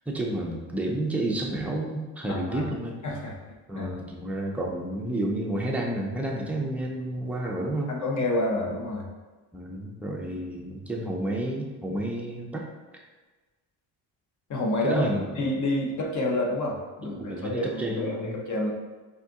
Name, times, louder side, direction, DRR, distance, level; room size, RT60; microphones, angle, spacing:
voice 1, 0.1-3.0 3.7-7.9 9.5-12.7 14.8-15.3 17.0-18.4, right 1 dB, 5° right, -1 dB, 0.4 m, -30 dB
voice 2, 2.3-2.6 3.0-3.4 3.8-3.9 7.4-7.6 7.9-9.1 14.5-15.0 15.4-18.7, left 1 dB, 40° left, 0 dB, 0.7 m, -28 dB
4.0 x 2.7 x 3.5 m, 1.3 s
cardioid pair, 125°, 44 cm